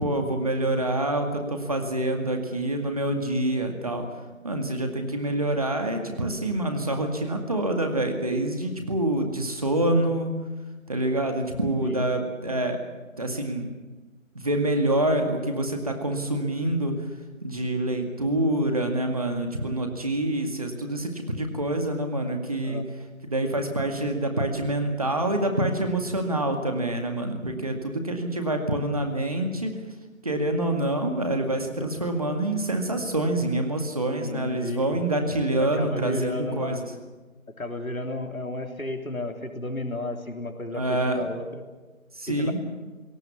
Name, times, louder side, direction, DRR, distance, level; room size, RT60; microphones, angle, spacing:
voice 1, 0.0-4.1 4.4-10.3 10.9-12.8 13.2-13.7 14.3-17.1 17.4-22.8 23.2-29.7 30.2-36.9 40.7-41.2 42.1-42.6, right 1 dB, 25° right, 4 dB, 2.1 m, -26 dB
voice 2, 34.2-35.0 35.6-36.8 37.6-41.6 42.3-42.5, left 2 dB, 90° left, 4 dB, 3.4 m, -33 dB
27.5 x 18.5 x 7.1 m, 1.3 s
figure-of-eight pair, 170°, 41 cm